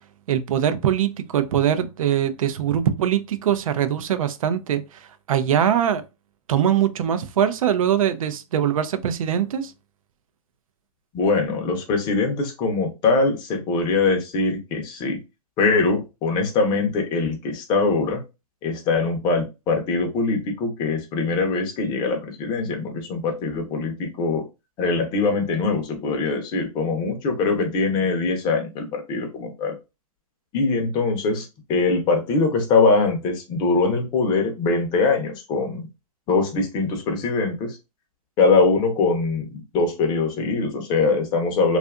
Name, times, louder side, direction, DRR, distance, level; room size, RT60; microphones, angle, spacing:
voice 1, 0.3-4.8 5.3-6.0 6.5-9.7, right 9 dB, 65° right, 0.4 m, -22 dB
voice 2, 11.1-15.2 15.6-18.2 18.6-24.4 24.8-29.7 30.5-35.8 36.3-37.8 38.4-41.8, left 3 dB, 25° left, 0.6 m, -22 dB
2.6 x 2.4 x 2.3 m
hypercardioid pair, 135°, 19 cm